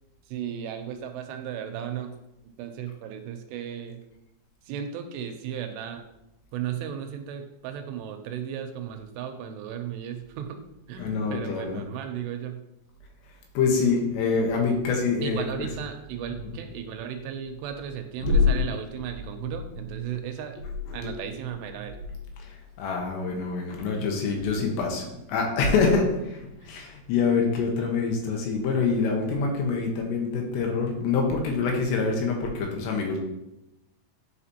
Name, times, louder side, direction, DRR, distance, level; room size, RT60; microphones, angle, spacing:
voice 1, 0.3-2.1 2.6-4.0 4.7-6.0 6.5-10.6 10.9-12.6 15.2-20.6 20.9-22.0 26.6-26.8 27.4-27.5, right 9 dB, 85° right, 6 dB, 2.7 m, -35 dB
voice 2, 11.0-11.8 13.5-15.7 18.2-18.7 20.9-21.2 22.4-22.5 22.8-26.4 26.6-33.2, left 4 dB, 80° left, 1 dB, 3.3 m, -25 dB
9.7 x 5.0 x 2.8 m, 0.89 s
omnidirectional pair, 5.0 m